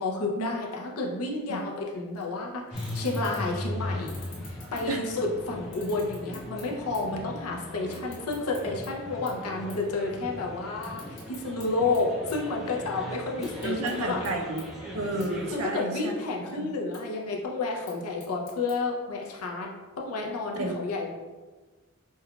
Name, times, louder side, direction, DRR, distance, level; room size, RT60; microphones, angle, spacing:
voice 1, 0.0-4.1 4.4-14.3 15.5-21.1, left 3 dB, 80° left, -1 dB, 0.6 m, -31 dB
sound 1, 2.2-2.3 2.7-3.6 4.0-5.3 5.6-7.2 7.5-8.9 9.3-9.4 9.7-9.9 10.2-11.7 11.9-12.9 13.3-13.9 14.2-14.3 14.6-14.7 15.2-15.3 15.7-16.2 16.7-17.0 17.7-18.7, left 4 dB, 60° left, 1.4 m, -49 dB
sound 2, 2.7-15.5, left 1 dB, ahead, 0.5 m, -39 dB
voice 2, 13.6-14.6 14.9-16.1 16.5-16.7 20.6-20.8, right 2 dB, 70° right, 2 dB, 0.5 m, -31 dB
5.4 x 2.3 x 2.3 m, 1.3 s
head